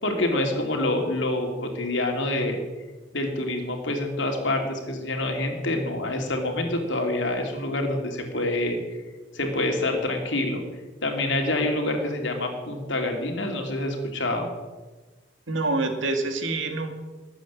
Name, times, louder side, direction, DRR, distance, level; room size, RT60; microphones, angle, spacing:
voice 1, 0.0-2.6 3.1-8.8 9.3-10.6 11.0-14.5, left 1 dB, 70° left, 3 dB, 2.9 m, -26 dB
voice 2, 15.5-16.9, right 2 dB, 80° right, 5 dB, 2.2 m, -26 dB
19.5 x 8.4 x 7.5 m, 1.3 s
head